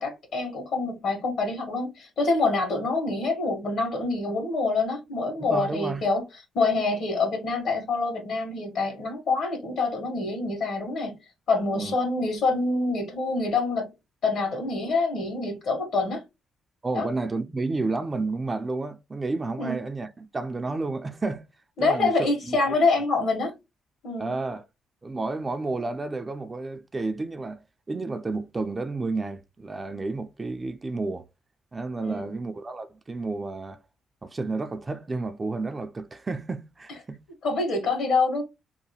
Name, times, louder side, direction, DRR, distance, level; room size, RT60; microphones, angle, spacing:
voice 1, 0.0-6.2 6.5-11.1 11.5-13.9 14.2-16.2 16.9-17.1 19.6-19.8 21.8-23.5 24.0-24.3 32.0-32.3 37.4-38.4, left 3 dB, 65° left, 1.2 m, -26 dB
voice 2, 5.4-6.0 11.7-12.0 16.8-21.5 21.8-22.1 22.4-22.8 24.2-24.6 25.0-31.3 31.7-33.8 34.2-37.2, right 3 dB, 25° right, 0.3 m, -31 dB
2.8 x 2.2 x 2.7 m
cardioid pair, 90°, 0 cm